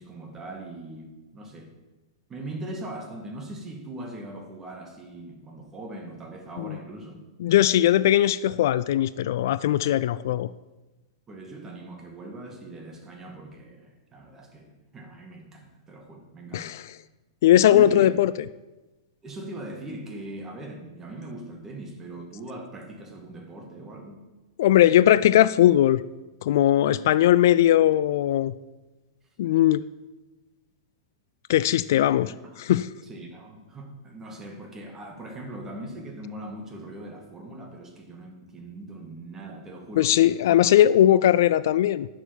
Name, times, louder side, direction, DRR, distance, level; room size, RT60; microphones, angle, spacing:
voice 1, 0.0-1.7 2.3-7.2 11.3-16.8 17.7-18.1 19.2-24.2 32.0-32.5 33.0-40.2 40.4-40.6, right 1 dB, 20° right, 3 dB, 2.3 m, -40 dB
voice 2, 7.4-10.5 16.5-16.9 17.4-18.3 24.6-26.0 26.4-28.5 29.4-29.8 31.5-32.3 32.6-32.9 40.0-42.1, left 12 dB, 55° left, 17 dB, 0.3 m, -19 dB
10.5 x 6.6 x 7.3 m, 1.1 s
figure-of-eight pair, 100°, 2 cm